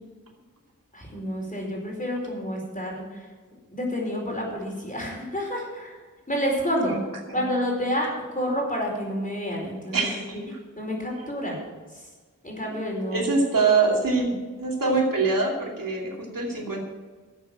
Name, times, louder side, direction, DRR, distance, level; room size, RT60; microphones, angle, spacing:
voice 1, 0.9-3.3 3.7-6.0 6.3-6.9 7.3-10.1 10.8-12.1 12.4-13.3, equal, 25° left, -2 dB, 4.8 m, -29 dB
voice 2, 9.9-10.4 13.1-16.8, right 4 dB, 90° right, -1 dB, 2.7 m, -24 dB
12.5 x 8.1 x 7.7 m, 1.4 s
wide cardioid pair, 75°, 32 cm